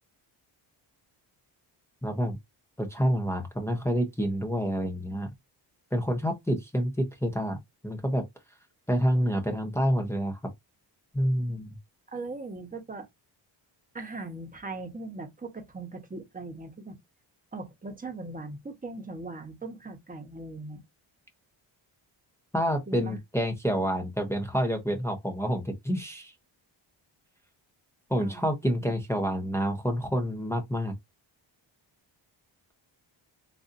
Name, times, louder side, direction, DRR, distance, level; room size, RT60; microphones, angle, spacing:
voice 1, 2.0-2.4 2.8-5.3 5.9-7.6 7.8-8.2 8.9-10.4 11.1-11.8 22.5-26.3 28.1-30.9, equal, 5° left, 0.8 m, -28 dB
voice 2, 12.1-13.1 13.9-17.0 17.5-20.8 22.9-23.2 28.2-28.4 28.8-28.9, right 3 dB, 15° right, 1.1 m, -39 dB
3.9 x 2.6 x 2.6 m
cardioid pair, 90°, 48 cm